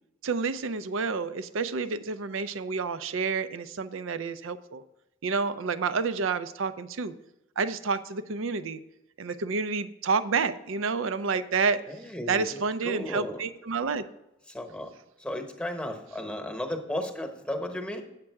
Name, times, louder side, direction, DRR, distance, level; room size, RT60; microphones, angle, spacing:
voice 1, 0.2-4.8 5.2-7.1 7.6-8.8 9.2-11.8 12.3-14.0, right 4 dB, 80° right, 13 dB, 0.5 m, -29 dB
voice 2, 11.9-13.4 14.5-14.9 15.2-18.0, left 1 dB, 5° left, 4 dB, 1.0 m, -34 dB
8.7 x 7.5 x 4.6 m, 0.91 s
head